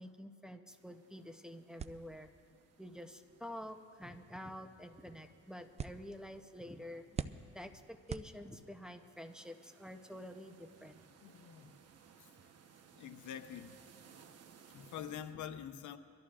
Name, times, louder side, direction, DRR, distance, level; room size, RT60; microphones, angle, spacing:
voice 1, 0.0-2.3 2.8-7.0 7.5-11.0, equal, ahead, 6 dB, 0.7 m, -48 dB
sound 1, 0.7-15.3, right 6 dB, 55° right, 1.0 m, -64 dB
sound 2, 1.8-8.9, right 6 dB, 20° right, 0.4 m, -49 dB
voice 2, 11.2-11.8 12.2-12.3 12.9-13.8 14.7-16.0, left 9 dB, 75° left, 9 dB, 0.8 m, -46 dB
24.0 x 14.0 x 2.5 m, 2.3 s
cardioid pair, 90°, 30 cm